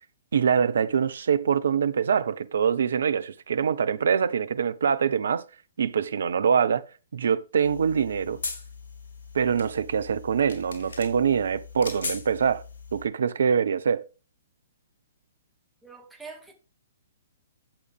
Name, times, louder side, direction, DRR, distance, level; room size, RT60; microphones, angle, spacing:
voice 1, 0.3-5.4 5.8-6.8 7.1-8.4 9.3-12.6 12.9-14.0, right 7 dB, 60° right, 0.9 m, -24 dB
sound 1, 7.6-13.1, left 4 dB, 60° left, 3.3 m, -39 dB
voice 2, 15.8-16.6, right 4 dB, ahead, 2.4 m, -44 dB
11.5 x 8.0 x 3.6 m
figure-of-eight pair, 120°, 0 cm